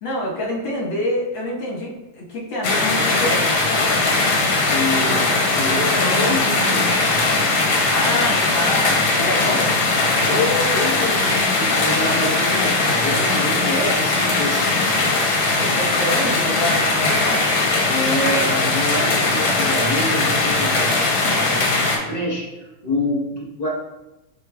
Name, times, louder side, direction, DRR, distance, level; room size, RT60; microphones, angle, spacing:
voice 1, 0.0-3.6 7.9-9.7 15.7-17.5, left 1 dB, 70° left, -4 dB, 2.0 m, -26 dB
sound 1, 2.6-22.0, left 3 dB, 85° left, 1.6 m, -19 dB
voice 2, 4.7-7.3 9.5-9.7 10.2-15.0 17.8-23.7, left 1 dB, 35° left, -5 dB, 0.6 m, -27 dB
7.4 x 3.1 x 2.2 m, 0.98 s
omnidirectional pair, 2.1 m